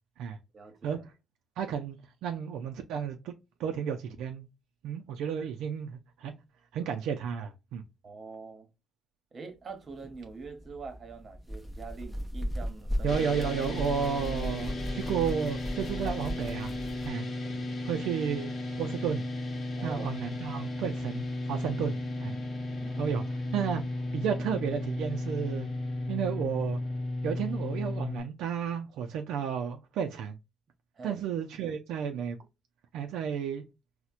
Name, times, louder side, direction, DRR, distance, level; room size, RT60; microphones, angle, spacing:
voice 1, 0.5-1.1 8.0-8.7 9.3-13.1 14.7-14.9 17.4-17.6 19.8-20.2 22.8-23.6 31.0-31.2, right 4 dB, 40° right, 0.9 m, -45 dB
voice 2, 1.6-3.3 3.6-4.5 4.8-6.3 6.7-7.8 13.0-16.7 17.0-17.3 17.8-18.5 18.8-19.2 19.8-22.4 23.0-23.2 23.5-25.7 26.1-26.8 27.2-30.4 31.0-32.4 32.9-33.6, right 7 dB, 90° right, 0.3 m, -32 dB
sound 1, 9.9-17.1, equal, 10° left, 0.6 m, -37 dB
sound 2, 13.1-28.2, left 2 dB, 45° left, 0.9 m, -35 dB
4.2 x 2.1 x 2.4 m
cardioid pair, 90°, 0 cm